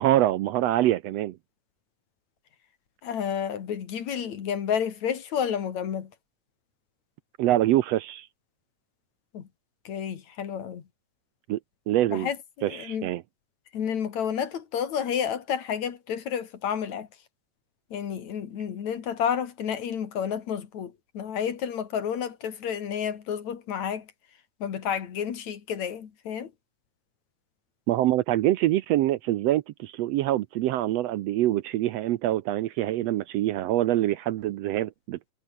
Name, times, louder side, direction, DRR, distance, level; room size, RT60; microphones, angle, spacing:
voice 1, 0.0-1.4 7.4-8.3 11.5-11.6 11.9-12.3 12.6-13.2 27.9-35.2, right 14 dB, 75° right, 1.7 m, -25 dB
voice 2, 3.0-6.1 9.3-9.5 9.9-10.8 12.1-13.1 13.7-17.1 17.9-24.1 24.6-26.5, left 8 dB, 75° left, 3.5 m, -30 dB
omnidirectional pair, 3.3 m